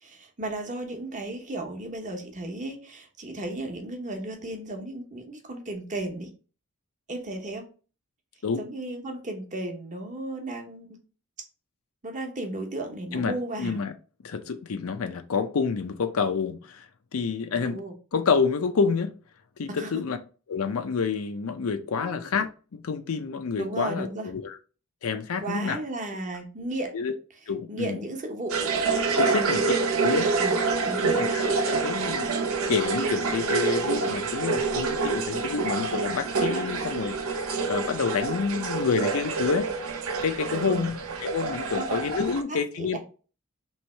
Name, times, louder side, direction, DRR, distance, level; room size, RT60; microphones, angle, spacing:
voice 1, 0.0-6.3 7.1-7.7 8.6-11.0 12.0-13.8 17.5-17.9 19.8-20.0 21.9-22.2 23.6-24.3 25.4-27.0 27.7-28.6 29.3-29.6 30.4-30.6 30.8-31.3 40.5-40.9 41.7-42.0 42.4-43.0, right 2 dB, 35° right, 1.0 m, -34 dB
voice 2, 13.1-13.9 14.2-16.9 17.1-17.8 18.1-19.2 19.6-20.2 20.5-24.6 25.0-25.8 26.9-27.1 27.5-28.0 29.0-29.6 30.0-30.3 31.0-32.4 32.7-39.7 40.2-43.0, left 5 dB, 65° left, 0.5 m, -28 dB
sound 1, 28.5-42.4, right 4 dB, 70° right, 0.6 m, -27 dB
3.2 x 3.0 x 4.3 m
head